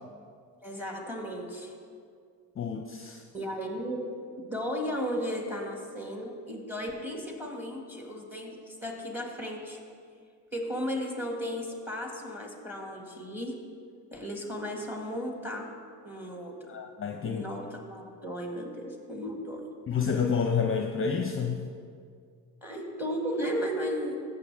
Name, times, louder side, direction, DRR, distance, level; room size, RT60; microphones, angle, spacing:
voice 1, 0.6-1.7 3.3-9.8 10.5-13.6 14.1-15.7 16.0-16.8 17.2-19.7 22.6-24.2, equal, 5° right, 1 dB, 1.9 m, -35 dB
voice 2, 2.6-3.2 16.7-17.4 19.9-21.7, left 6 dB, 30° left, 3 dB, 0.7 m, -29 dB
14.5 x 6.9 x 3.4 m, 2.1 s
cardioid pair, 85°, 40 cm